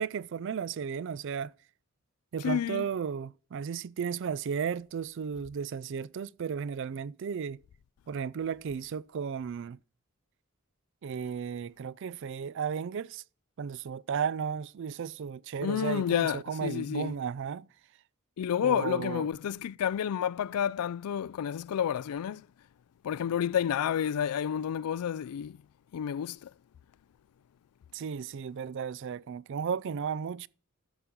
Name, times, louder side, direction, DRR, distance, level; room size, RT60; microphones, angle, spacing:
voice 1, 0.0-1.5 2.3-7.6 8.1-9.8 11.0-13.2 13.6-17.7 18.6-19.3 27.9-30.5, right 7 dB, 55° right, 0.3 m, -34 dB
voice 2, 2.4-2.9 15.6-17.1 18.4-22.5 23.0-25.6 25.9-26.5, left 9 dB, 90° left, 0.3 m, -30 dB
12.0 x 7.0 x 3.6 m
head